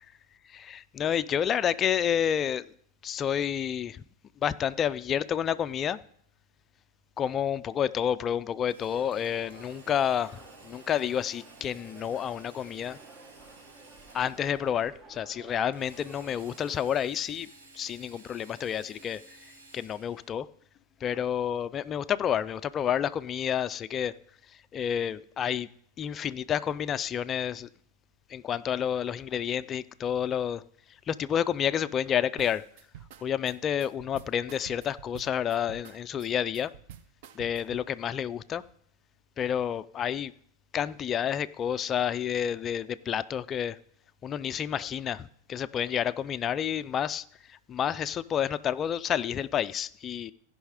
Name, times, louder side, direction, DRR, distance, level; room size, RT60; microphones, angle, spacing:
voice 1, 0.5-2.7 3.0-4.0 4.4-6.0 7.2-13.0 14.1-17.5 17.7-19.2 19.7-20.5 21.0-24.1 24.7-25.7 26.0-27.7 28.3-30.6 31.1-32.6 33.2-36.7 37.3-38.6 39.4-40.3 40.7-43.8 44.2-50.3, left 9 dB, 25° left, 0.3 m, -29 dB
Drill, 8.7-14.8 15.7-20.4, right 3 dB, 85° right, 2.6 m, -55 dB
sound 1, 8.9-16.8, right 3 dB, 25° right, 1.0 m, -52 dB
sound 2, 32.4-37.9, right 10 dB, 55° right, 0.5 m, -49 dB
15.0 x 5.5 x 4.9 m
supercardioid pair, 150°, 0 cm